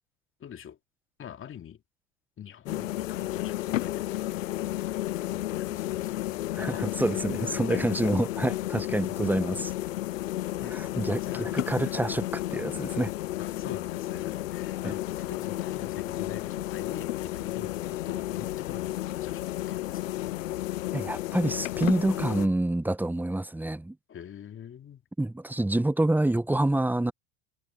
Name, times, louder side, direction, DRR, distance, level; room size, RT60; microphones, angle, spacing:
voice 1, 0.4-0.8 1.2-1.8 2.4-6.9 7.4-8.2 10.6-11.5 13.4-20.1 24.1-25.0, left 9 dB, 30° left, 2.6 m, -44 dB
sound 1, 2.7-22.5, left 15 dB, 70° left, 0.8 m, -32 dB
voice 2, 6.6-9.7 10.7-13.1 14.8-14.9 20.9-24.0 25.2-27.1, right 1 dB, 5° right, 1.3 m, -27 dB
figure-of-eight pair, 80°, 40 cm